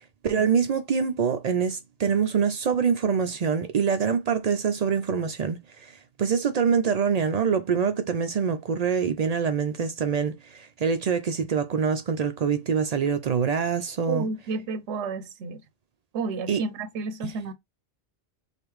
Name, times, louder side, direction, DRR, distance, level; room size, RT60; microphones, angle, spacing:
voice 1, 0.2-5.9 6.2-14.3 16.5-16.6 17.2-17.3, right 6 dB, 60° right, 0.4 m, -25 dB
voice 2, 14.1-15.6 16.1-17.5, right 4 dB, 85° right, 0.9 m, -31 dB
4.9 x 2.4 x 3.1 m
omnidirectional pair, 1.2 m